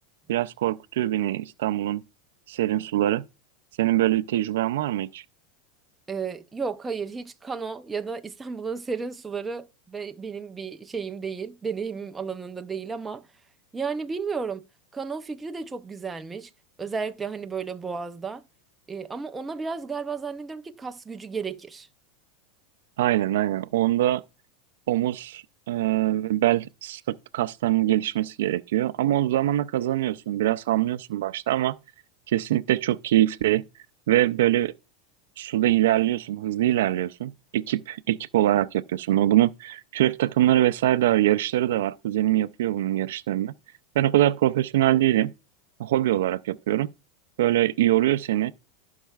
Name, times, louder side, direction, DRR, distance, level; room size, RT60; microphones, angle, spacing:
voice 1, 0.3-2.0 2.5-3.2 3.8-5.2 23.0-24.2 24.9-31.7 32.3-33.6 34.1-34.7 35.4-43.5 44.0-45.3 45.8-46.9 47.4-48.5, right 14 dB, 80° right, 0.4 m, -23 dB
voice 2, 6.1-13.3 13.7-14.6 14.9-16.5 16.8-18.4 18.9-21.9, right 5 dB, 10° right, 0.5 m, -33 dB
15.0 x 5.5 x 2.3 m
supercardioid pair, 145°, 0 cm